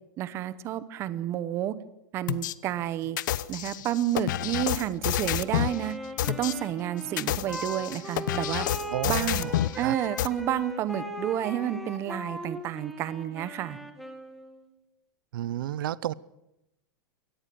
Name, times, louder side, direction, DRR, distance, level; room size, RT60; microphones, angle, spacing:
voice 1, 0.2-1.8 2.1-3.2 3.5-5.9 6.4-8.7 9.0-13.8, right 11 dB, 25° right, 15 dB, 0.9 m, -30 dB
sound 1, 2.3-2.5 3.2-5.8 6.2-6.5 7.0-9.8 10.2-10.3, left 13 dB, 65° left, 0.9 m, -29 dB
Wind instrument woodwind instrument, 5.0-11.1, left 2 dB, 15° left, 3.8 m, -53 dB
Wind instrument woodwind instrument 2, 5.6-14.6, equal, ahead, 1.9 m, -39 dB
voice 2, 8.9-9.9 15.3-16.1, right 13 dB, 85° right, 21 dB, 0.7 m, -32 dB
23.5 x 18.0 x 6.9 m, 0.87 s
supercardioid pair, 175°, 11 cm